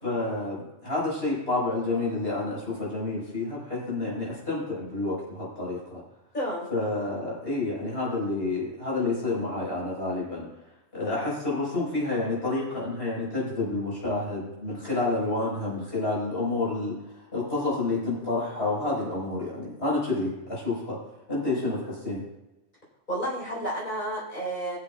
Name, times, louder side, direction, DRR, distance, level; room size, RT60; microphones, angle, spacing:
voice 1, 0.0-6.0 6.7-10.5 10.9-21.0 21.3-22.2, left 2 dB, 60° left, -5 dB, 5.1 m, -29 dB
voice 2, 6.3-6.7 23.1-24.8, right 1 dB, 40° left, -4 dB, 4.5 m, -31 dB
21.0 x 8.1 x 2.4 m, 0.98 s
omnidirectional pair, 1.2 m